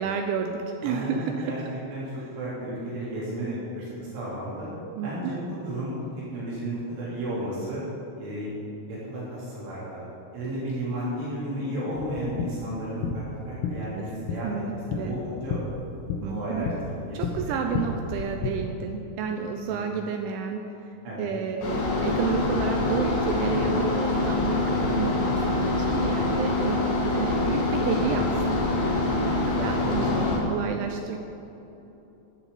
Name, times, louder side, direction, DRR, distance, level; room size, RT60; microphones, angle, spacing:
voice 1, 0.0-1.8 5.0-5.4 14.0-14.1 14.4-15.2 16.2-16.7 17.1-26.8 27.2-29.1 29.6-30.1 30.5-31.2, right 6 dB, 85° right, 4 dB, 2.8 m, -31 dB
voice 2, 0.8-1.6 1.9-4.7 5.0-5.4 5.6-6.0 6.3-7.8 8.2-8.5 8.9-10.1 10.3-14.5 14.9-15.6 16.3-17.6 19.7-19.8 21.0-21.3 26.5-26.6 29.5-30.5, right 1 dB, 65° right, -8 dB, 5.8 m, -33 dB
sound 1, 12.0-18.5, left 5 dB, 85° left, 3.6 m, -33 dB
sound 2, 21.6-30.4, left 2 dB, 60° left, 4.0 m, -25 dB
15.5 x 13.0 x 4.2 m, 2.9 s
omnidirectional pair, 6.0 m